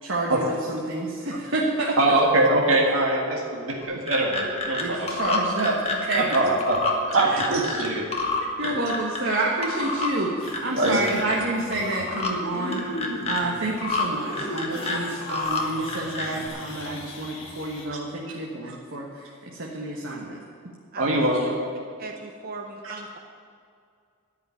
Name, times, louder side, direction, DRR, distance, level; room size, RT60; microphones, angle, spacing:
voice 1, 0.0-2.0 4.8-6.2 7.3-7.4 8.6-12.8 13.3-20.4, right 2 dB, 65° right, -3 dB, 1.5 m, -29 dB
voice 2, 2.0-5.2 6.1-6.8 7.1-8.1 8.6-8.7 9.1-9.2 10.8-11.1 15.3-15.4 21.0-21.5 22.8-22.9, right 2 dB, 85° right, -2 dB, 1.8 m, -23 dB
sound 1, 3.8-4.8 5.1-9.4 9.6-10.1 10.5-11.4 11.7-12.3 12.7-13.4 13.8-14.1 14.3-15.6 15.9-16.5, left 4 dB, 30° left, 1.5 m, -28 dB
sound 2, 10.4-17.9, left 1 dB, 65° left, 1.8 m, -38 dB
voice 3, 22.0-23.1, right 4 dB, 45° right, 3 dB, 0.8 m, -37 dB
13.0 x 5.7 x 9.5 m, 2.3 s
head